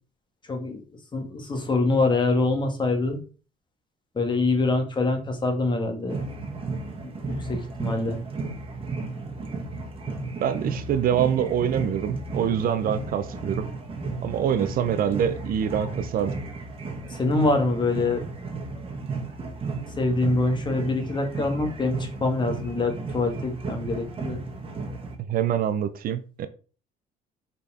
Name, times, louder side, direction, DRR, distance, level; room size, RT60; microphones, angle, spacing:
voice 1, 0.5-0.8 1.1-3.2 4.2-6.2 7.0-8.2 17.1-18.2 20.0-24.4, left 2 dB, 25° left, 1.7 m, -25 dB
sound 1, 6.1-25.2, right 3 dB, 35° right, 1.7 m, -34 dB
voice 2, 10.4-13.7 14.2-16.3 25.2-26.5, right 9 dB, 60° right, 0.7 m, -25 dB
5.2 x 4.3 x 4.2 m
cardioid pair, 110°, 17 cm